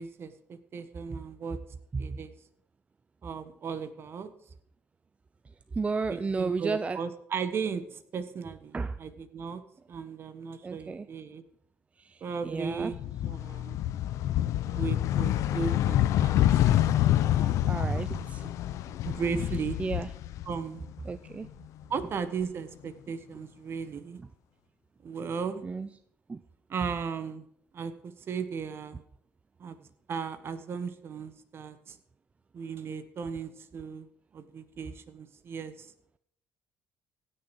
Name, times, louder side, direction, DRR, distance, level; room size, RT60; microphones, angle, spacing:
voice 1, 0.0-1.6 2.0-2.3 3.2-4.3 6.1-9.6 9.9-11.4 12.2-13.8 14.7-16.6 17.3-17.7 18.4-18.5 19.0-19.8 20.4-20.8 21.9-24.2 25.0-25.6 26.7-27.5 27.7-29.0 29.6-32.0 32.5-34.1 34.3-35.9, right 6 dB, 45° right, 11 dB, 1.3 m, -36 dB
voice 2, 5.7-7.0 8.7-9.0 10.6-11.1 12.0-12.9 17.7-18.5 19.8-20.1 21.0-21.5 25.6-25.9 26.3-26.4, right 4 dB, 25° right, 12 dB, 0.5 m, -32 dB
sound 1, 12.8-20.9 21.3-22.4, left 12 dB, 75° left, 0.6 m, -27 dB
16.0 x 6.7 x 6.2 m, 0.71 s
cardioid pair, 95°, 5 cm